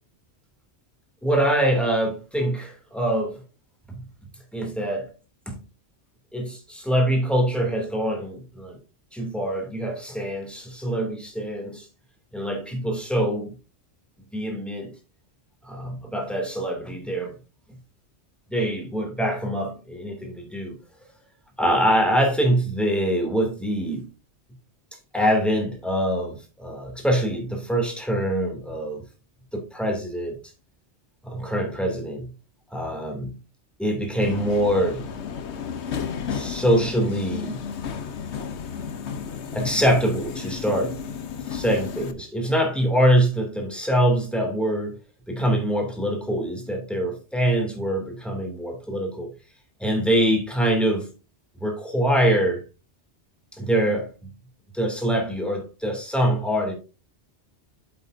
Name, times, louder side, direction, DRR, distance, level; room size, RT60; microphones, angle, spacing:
voice 1, 1.2-3.4 3.9-4.0 4.5-5.1 5.5-5.6 6.3-8.8 9.1-11.9 12.3-13.5 14.3-14.9 15.6-17.4 18.5-20.8 21.6-24.1 25.1-29.0 29.5-30.4 31.2-32.3 32.7-33.4 33.8-35.1 36.3-37.6 39.5-41.0 41.5-45.0 45.3-49.3 49.8-51.1 51.6-52.6 53.5-54.3 54.7-56.7, right 1 dB, ahead, 2.6 m, -24 dB
Subway metro underground, 34.2-42.1, left 7 dB, 85° left, 1.2 m, -33 dB
8.3 x 7.9 x 2.7 m
omnidirectional pair, 1.1 m